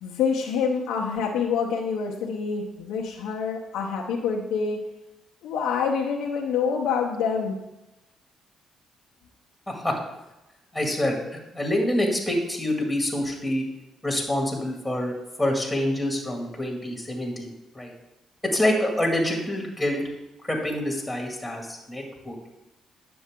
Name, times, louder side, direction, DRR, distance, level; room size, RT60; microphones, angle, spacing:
voice 1, 0.0-4.8 5.4-7.6, left 6 dB, 90° left, -2 dB, 0.9 m, -26 dB
voice 2, 9.7-10.0 10.7-13.6 14.0-17.9 18.5-20.0 20.4-22.5, left 1 dB, 5° left, 0 dB, 2.2 m, -26 dB
9.4 x 7.0 x 3.7 m, 0.98 s
cardioid pair, 90°, 0 cm